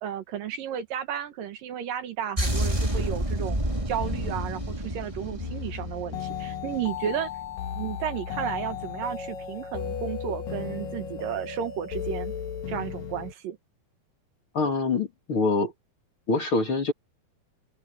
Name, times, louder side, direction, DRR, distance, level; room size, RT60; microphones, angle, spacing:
voice 1, 0.0-3.6 3.9-7.3 7.7-12.3 12.7-13.6, right 9 dB, 75° right, 3.0 m, -33 dB
sound 1, 2.4-6.9 7.2-7.5, right 1 dB, 10° right, 3.5 m, -29 dB
sound 2, 4.0-13.3, left 7 dB, 70° left, 3.6 m, -35 dB
voice 2, 14.5-15.7 16.3-16.9, left 3 dB, 40° left, 3.1 m, -25 dB
open air
omnidirectional pair, 4.2 m